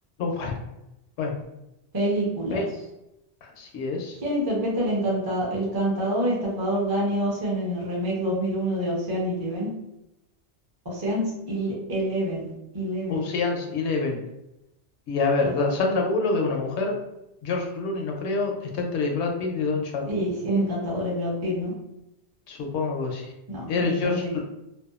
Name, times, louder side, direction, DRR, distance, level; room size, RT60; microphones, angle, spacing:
voice 1, 0.2-0.5 1.2-1.3 2.5-2.6 3.6-4.2 13.1-14.2 15.1-16.9 17.4-20.2 22.5-23.3 23.7-24.4, left 3 dB, 80° left, 1 dB, 0.9 m, -26 dB
voice 2, 1.9-2.6 4.2-9.7 10.8-13.2 15.4-15.5 20.1-21.7 23.5-24.4, equal, 25° right, -5 dB, 0.6 m, -27 dB
2.6 x 2.2 x 2.4 m, 0.90 s
omnidirectional pair, 1.2 m